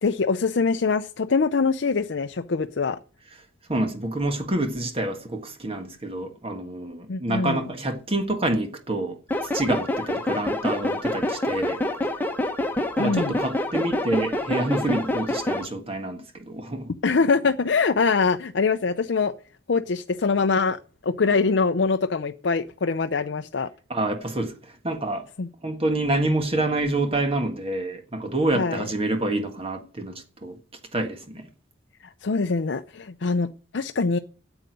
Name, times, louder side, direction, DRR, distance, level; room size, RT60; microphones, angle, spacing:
voice 1, 0.0-3.0 7.1-7.7 13.0-13.4 17.0-19.3 19.7-23.7 25.4-25.5 28.5-28.8 32.0-34.2, left 4 dB, 70° left, 0.6 m, -23 dB
voice 2, 3.7-11.8 13.0-16.9 23.9-25.3 25.6-30.6 30.9-31.5, right 1 dB, 30° right, 1.6 m, -27 dB
sound 1, 9.3-15.6, left 1 dB, 10° left, 1.3 m, -27 dB
9.1 x 8.0 x 9.2 m
head